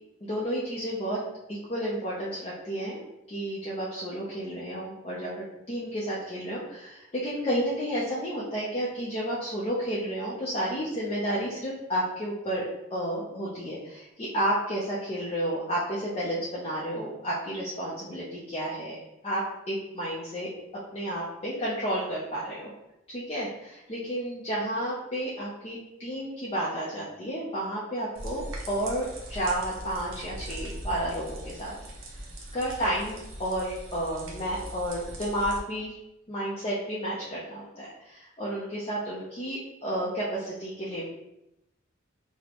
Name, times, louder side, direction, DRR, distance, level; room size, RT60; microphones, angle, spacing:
voice 1, 0.2-1.2 1.5-5.3 5.7-12.6 12.9-19.0 19.2-20.5 20.9-22.7 23.1-31.7 32.5-36.0 36.3-41.1, right 1 dB, 30° left, -6 dB, 0.5 m, -31 dB
sound 1, 28.1-35.6, right 1 dB, 70° right, 0.7 m, -40 dB
4.1 x 2.1 x 2.9 m, 0.89 s
head